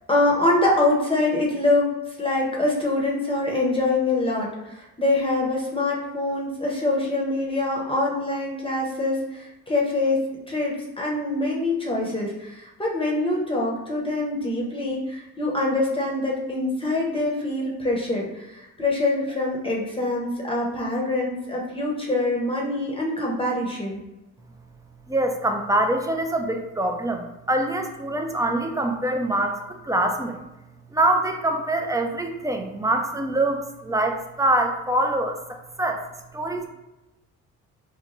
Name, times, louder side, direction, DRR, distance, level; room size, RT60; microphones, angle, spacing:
voice 1, 0.1-1.9 2.2-10.2 10.5-24.0, left 2 dB, 20° left, -3 dB, 0.7 m, -24 dB
voice 2, 25.1-30.4 30.9-36.0 36.3-36.7, right 1 dB, 10° right, 4 dB, 0.3 m, -24 dB
3.7 x 2.2 x 3.0 m, 0.97 s
cardioid pair, 90°, 30 cm